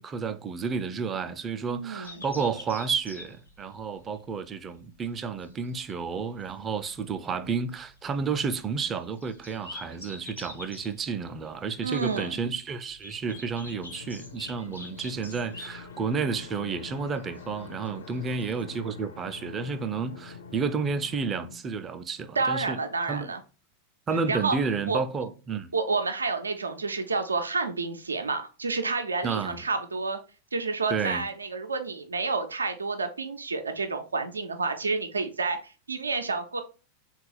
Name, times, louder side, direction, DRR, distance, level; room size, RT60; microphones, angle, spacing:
voice 1, 0.0-22.8 23.1-23.3 24.1-25.7 29.2-29.6 30.9-31.2, right 5 dB, 20° right, 0.4 m, -31 dB
voice 2, 1.7-2.2 11.8-12.3 22.4-23.4 24.3-24.6 24.9-25.0 25.7-30.2 30.5-36.6, right 4 dB, 75° right, 0.5 m, -29 dB
sound 1, 2.0-18.6, left 2 dB, 85° left, 1.1 m, -46 dB
sound 2, 13.6-21.6, left 5 dB, 65° left, 0.4 m, -45 dB
3.9 x 2.3 x 3.9 m
figure-of-eight pair, 90°, 0 cm